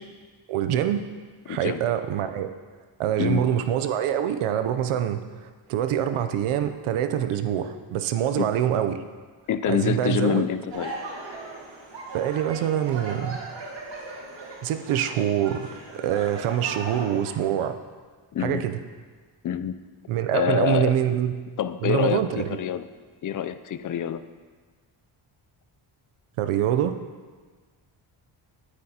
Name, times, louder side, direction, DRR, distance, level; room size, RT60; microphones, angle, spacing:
voice 1, 0.5-1.0 1.5-2.5 3.0-9.0 9.7-10.4 12.1-13.4 14.6-17.8 18.4-18.8 20.1-21.3 21.8-22.4 26.4-27.0, right 10 dB, 90° right, 9 dB, 0.6 m, -25 dB
voice 2, 1.5-1.8 3.2-3.4 8.4-8.5 9.5-10.9 18.3-18.6 19.4-19.7 20.3-20.9 21.6-22.9 23.2-24.2, left 9 dB, 45° left, 13 dB, 0.4 m, -26 dB
sound 1, 10.7-17.3, right 3 dB, 60° right, 1.7 m, -38 dB
9.6 x 8.9 x 2.8 m, 1.4 s
cardioid pair, 75°, 49 cm